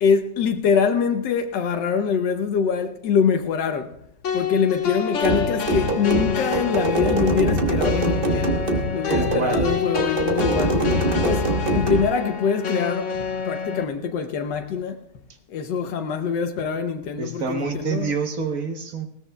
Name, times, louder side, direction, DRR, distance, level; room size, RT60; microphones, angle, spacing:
voice 1, 0.0-3.9 4.3-11.0 11.2-13.2 13.4-15.0 15.5-18.1, left 6 dB, 85° left, 1.4 m, -24 dB
sound 1, 4.2-13.8, left 7 dB, 50° left, 1.2 m, -28 dB
sound 2, 5.2-12.1, right 2 dB, 35° right, 1.2 m, -23 dB
voice 2, 9.1-9.6 17.2-19.1, right 4 dB, 55° right, 1.3 m, -27 dB
20.0 x 16.5 x 2.2 m
omnidirectional pair, 1.8 m